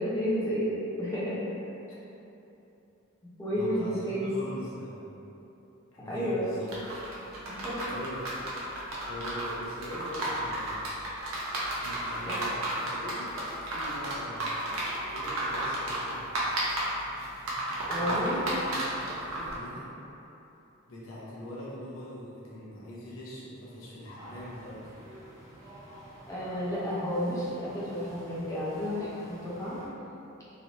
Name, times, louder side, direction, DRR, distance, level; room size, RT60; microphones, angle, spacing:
voice 1, 0.0-1.5 3.4-4.3 6.1-6.5 7.5-7.8 17.9-18.4 26.3-29.8, equal, 15° left, -9 dB, 0.7 m, -31 dB
voice 2, 3.5-5.1 5.9-6.7 7.9-8.2 9.1-10.8 11.8-16.5 18.0-19.9 20.9-25.0, equal, 65° left, -7 dB, 0.8 m, -42 dB
sound 1, 6.7-19.5, right 1 dB, 75° right, 0.6 m, -33 dB
sound 2, 24.2-29.9, equal, 20° right, 0.6 m, -50 dB
3.1 x 2.7 x 2.9 m, 2.9 s
head